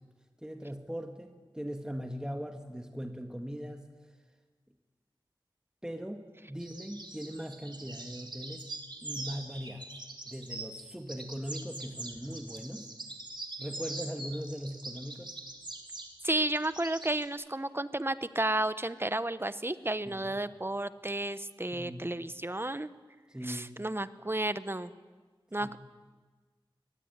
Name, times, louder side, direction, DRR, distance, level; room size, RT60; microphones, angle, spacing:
voice 1, 0.4-3.9 5.8-8.7 9.0-9.9 10.3-12.9 13.6-15.3 20.1-20.4 21.7-22.1 23.3-23.8 25.6-25.7, equal, 10° right, 4 dB, 2.1 m, -40 dB
sound 1, 6.6-10.8 11.1-17.2, right 2 dB, 55° right, 3.2 m, -43 dB
voice 2, 16.2-22.9 23.4-24.9 25.5-25.8, right 1 dB, 25° right, 13 dB, 1.1 m, -32 dB
22.5 x 19.5 x 9.8 m, 1.4 s
wide cardioid pair, 55°, 9 cm